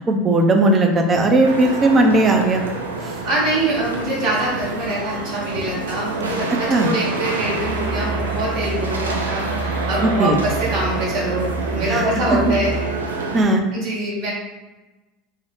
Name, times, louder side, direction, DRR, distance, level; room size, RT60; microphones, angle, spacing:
voice 1, 0.1-2.6 3.0-3.1 6.7-6.9 10.0-10.4 11.8-12.0 13.3-13.6, right 2 dB, 30° right, 3 dB, 0.6 m, -17 dB
sound 1, 1.4-13.4, right 3 dB, 85° right, 0.4 m, -27 dB
voice 2, 3.2-12.9 13.7-14.3, right 1 dB, 60° right, -6 dB, 1.1 m, -24 dB
Musical instrument, 7.4-12.9, right 4 dB, 55° left, 0.4 m, -29 dB
2.7 x 2.2 x 3.4 m, 1.1 s
figure-of-eight pair, 75°, 0 cm